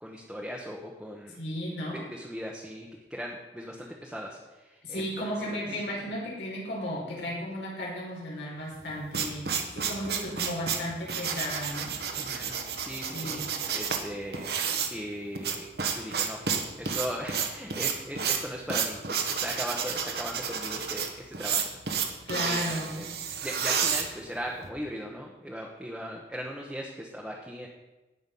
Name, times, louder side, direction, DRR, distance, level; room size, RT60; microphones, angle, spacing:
voice 1, 0.0-1.4 2.1-5.7 6.1-6.2 12.2-13.4 13.7-14.5 14.9-15.7 15.9-16.4 16.8-21.7 22.4-23.1 23.4-27.7, equal, 5° right, -2 dB, 1.1 m, -38 dB
voice 2, 1.4-2.0 4.8-11.9 13.1-13.5 22.3-23.0, equal, 85° left, -4 dB, 5.2 m, -34 dB
sound 1, 8.7-24.7, right 6 dB, 65° right, 1.4 m, -31 dB
17.5 x 6.2 x 5.6 m, 1.1 s
head